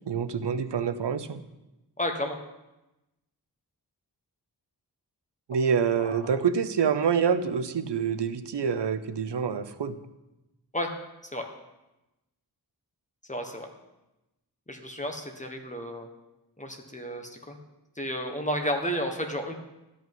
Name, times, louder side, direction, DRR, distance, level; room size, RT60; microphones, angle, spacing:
voice 1, 0.1-1.4 5.5-10.0, right 6 dB, 80° right, 10 dB, 0.9 m, -26 dB
voice 2, 2.0-2.4 5.9-6.2 10.7-10.9 11.3-11.5 13.3-13.7 14.7-16.1 16.6-17.6 18.0-19.5, equal, 20° left, 3 dB, 1.4 m, -32 dB
13.0 x 5.6 x 9.4 m, 0.98 s
wide cardioid pair, 110°, 41 cm